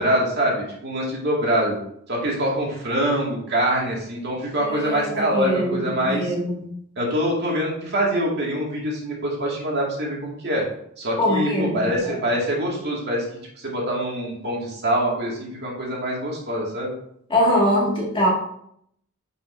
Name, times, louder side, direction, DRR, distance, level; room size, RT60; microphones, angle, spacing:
voice 1, 0.0-1.8 2.1-6.3 7.0-10.6 11.0-13.2 13.6-16.9, equal, 50° right, -3 dB, 2.2 m, -24 dB
voice 2, 4.6-6.7 11.2-12.2 17.3-18.3, equal, 25° left, -4 dB, 2.0 m, -23 dB
9.8 x 5.4 x 2.7 m, 0.71 s
head